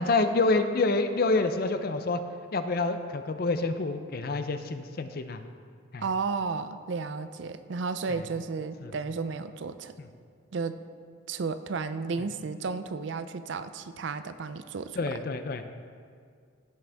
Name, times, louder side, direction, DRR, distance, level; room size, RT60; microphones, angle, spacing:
voice 1, 0.0-2.2 2.5-5.4 5.9-6.0 8.8-8.9 10.0-10.1 15.0-15.7, left 3 dB, 45° left, 9 dB, 0.5 m, -27 dB
voice 2, 6.0-9.9 10.5-10.8 11.3-15.0, right 4 dB, 60° right, 11 dB, 0.4 m, -33 dB
15.5 x 6.2 x 3.4 m, 2.1 s
head